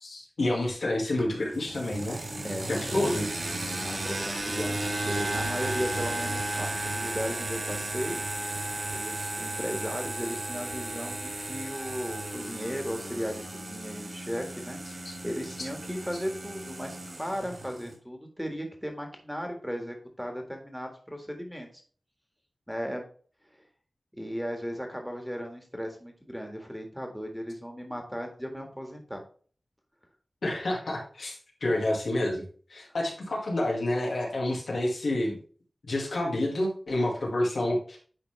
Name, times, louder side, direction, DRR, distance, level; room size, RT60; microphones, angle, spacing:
voice 1, 0.0-2.2 2.7-3.3 15.0-15.1 30.4-32.4 32.7-35.4 35.9-38.0, left 1 dB, 90° left, -3 dB, 2.2 m, -29 dB
sound 1, 1.2-17.9, right 2 dB, 60° right, 3.4 m, -34 dB
voice 2, 2.4-3.3 3.8-8.2 8.5-21.7 22.7-23.1 23.6-23.7 24.2-29.2 32.8-32.9, equal, ahead, 3 dB, 1.7 m, -36 dB
9.8 x 4.0 x 3.4 m, 0.43 s
wide cardioid pair, 70°, 0 cm